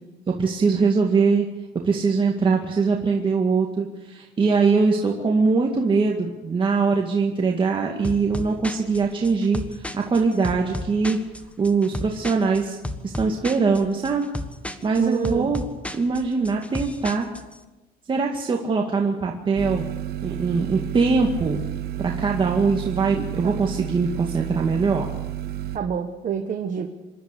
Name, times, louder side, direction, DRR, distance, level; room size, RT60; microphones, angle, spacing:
voice 1, 0.3-1.5 1.8-11.2 11.6-12.8 13.0-14.3 14.8-15.7 15.9-17.3 18.1-19.8 20.2-21.6 22.0-25.1, right 4 dB, 30° right, 0 dB, 2.1 m, -22 dB
sound 1, 8.0-17.6, left 1 dB, 5° left, 1.4 m, -34 dB
voice 2, 15.0-15.5 23.4-23.5 25.7-26.9, right 8 dB, 45° right, 5 dB, 1.6 m, -27 dB
sound 2, 19.6-25.8, right 12 dB, 70° right, 1.1 m, -31 dB
26.5 x 11.5 x 8.5 m, 1.1 s
cardioid pair, 110°, 17 cm